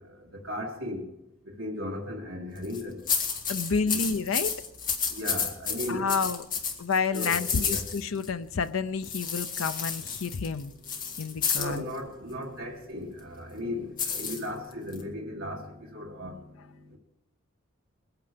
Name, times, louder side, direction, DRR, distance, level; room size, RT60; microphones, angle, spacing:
voice 1, 0.3-1.0 1.6-3.0 3.9-4.0 5.1-6.2 7.1-7.9 11.5-16.4, left 1 dB, 60° right, -2 dB, 1.8 m, -36 dB
sound 1, 2.6-2.8 3.1-8.3 9.0-11.8 14.0-15.0, left 6 dB, 40° left, 1.9 m, -31 dB
voice 2, 3.5-4.6 5.9-6.4 6.8-10.7 11.2-11.8, left 5 dB, 70° left, 12 dB, 0.6 m, -29 dB
22.0 x 9.1 x 5.2 m, 0.91 s
head